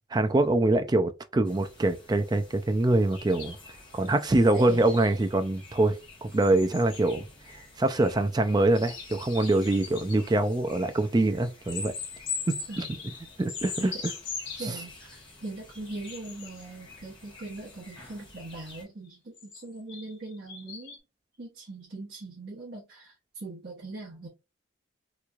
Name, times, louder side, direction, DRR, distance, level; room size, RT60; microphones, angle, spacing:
voice 1, 0.1-3.6 3.9-7.3 7.8-11.9 12.5-12.8 13.4-13.9 14.6-14.8, right 2 dB, 20° right, 0.3 m, -24 dB
sound 1, 1.4-18.8, left 2 dB, 25° left, 1.2 m, -50 dB
sound 2, 3.1-5.4 6.4-7.0 7.9-8.0 8.8-10.2 11.7-15.0 16.1-16.6 19.1-21.0, left 5 dB, 60° left, 1.0 m, -39 dB
voice 2, 14.6-21.0 21.4-24.3, right 2 dB, 50° right, 1.0 m, -40 dB
3.3 x 3.1 x 2.4 m
head